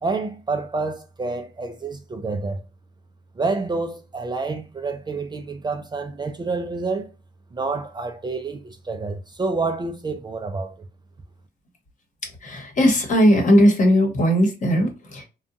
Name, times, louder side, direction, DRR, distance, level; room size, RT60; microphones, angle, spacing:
voice 1, 0.0-2.6 3.4-7.1 7.5-10.7, right 3 dB, 25° right, 0.4 m, -28 dB
voice 2, 12.4-15.2, equal, 45° left, 1.1 m, -18 dB
2.6 x 2.3 x 2.5 m
cardioid pair, 95°, 18 cm